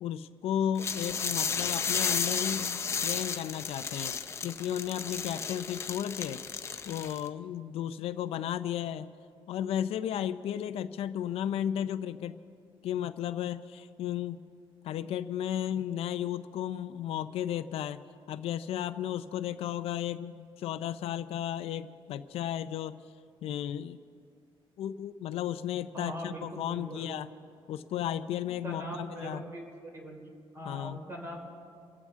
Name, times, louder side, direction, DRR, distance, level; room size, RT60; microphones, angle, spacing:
voice 1, 0.0-4.2 4.4-6.4 6.9-9.1 9.5-12.4 12.8-14.4 14.8-18.0 18.3-23.0 23.4-24.0 24.8-27.3 27.7-29.4 30.6-31.0, left 10 dB, 70° left, 12 dB, 0.5 m, -34 dB
sound 1, 0.8-7.3, left 6 dB, 25° left, 0.6 m, -33 dB
voice 2, 25.9-27.1 28.6-30.2 30.5-31.4, right 1 dB, 25° right, 0 dB, 3.1 m, -40 dB
27.5 x 14.5 x 3.6 m, 2.5 s
cardioid pair, 170°, 10 cm